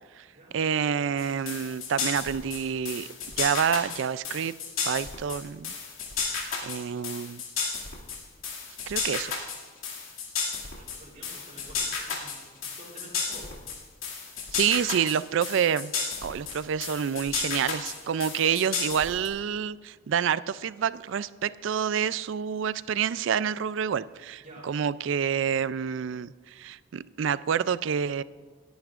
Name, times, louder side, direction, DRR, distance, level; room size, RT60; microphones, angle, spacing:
voice 1, 0.5-3.1 3.4-4.5 4.9-5.7 6.2-6.4 6.6-7.4 8.9-9.3 14.5-15.9 16.2-28.2, right 7 dB, 65° right, 17 dB, 0.3 m, -28 dB
sound 1, 1.2-19.3, left 5 dB, 85° left, 2.3 m, -33 dB
voice 2, 10.7-13.6 24.4-24.7, right 1 dB, 40° right, -4 dB, 3.3 m, -49 dB
28.0 x 10.5 x 2.5 m, 1.5 s
head